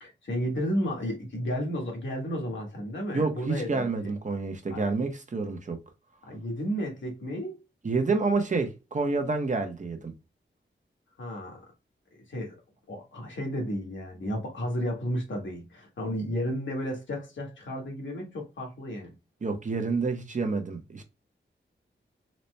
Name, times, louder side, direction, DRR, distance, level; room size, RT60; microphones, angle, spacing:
voice 1, 0.0-4.1 4.7-4.8 6.3-7.6 11.2-11.6 12.1-12.6 12.9-19.1, equal, 75° left, 1.4 m, -33 dB
voice 2, 3.1-5.8 7.8-10.1 19.4-21.0, right 3 dB, 40° right, 0.7 m, -28 dB
4.1 x 2.1 x 3.2 m
wide cardioid pair, 120°, 19 cm